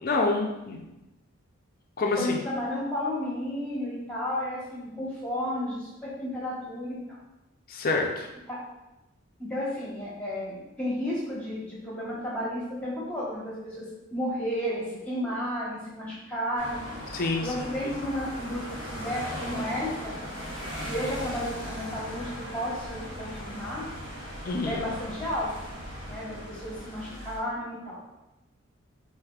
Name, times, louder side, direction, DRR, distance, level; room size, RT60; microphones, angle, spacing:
voice 1, 0.0-0.8 2.0-2.4 7.7-8.3 17.1-17.5 24.5-24.8, left 3 dB, 40° left, 1 dB, 0.4 m, -27 dB
voice 2, 2.2-7.0 8.5-8.6 9.4-16.9 17.4-20.2 20.8-23.8 24.7-25.5 26.1-28.0, left 1 dB, 5° left, -7 dB, 1.0 m, -32 dB
sound 1, 16.6-27.4, equal, 60° right, 1.0 m, -38 dB
4.9 x 2.7 x 2.3 m, 0.96 s
head